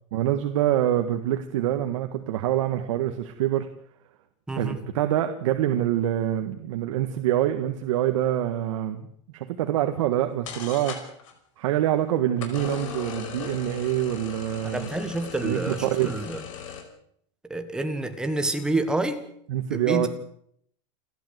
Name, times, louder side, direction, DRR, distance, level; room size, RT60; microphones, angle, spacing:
voice 1, 0.1-3.7 4.6-9.1 9.3-11.0 11.6-14.9 15.4-16.2 19.5-20.1, right 12 dB, 70° right, 6 dB, 1.7 m, -25 dB
sound 1, 10.1-10.2 10.5-11.3 12.4-16.8, left 7 dB, 80° left, 5.3 m, -38 dB
voice 2, 14.6-16.4 17.5-19.2 19.7-20.1, right 2 dB, 5° right, 7 dB, 1.6 m, -28 dB
29.0 x 12.0 x 8.1 m, 0.68 s
supercardioid pair, 175°, 17 cm